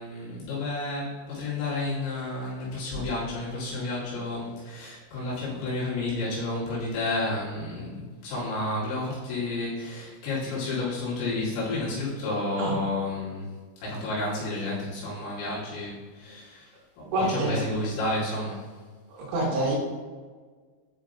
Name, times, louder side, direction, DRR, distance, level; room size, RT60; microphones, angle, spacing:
voice 1, 0.0-13.5 13.8-16.7 17.2-18.7, left 2 dB, 85° left, -8 dB, 4.7 m, -31 dB
voice 2, 17.0-17.6 19.1-19.8, right 2 dB, 75° right, -5 dB, 4.2 m, -27 dB
9.3 x 4.7 x 2.6 m, 1.5 s
omnidirectional pair, 5.8 m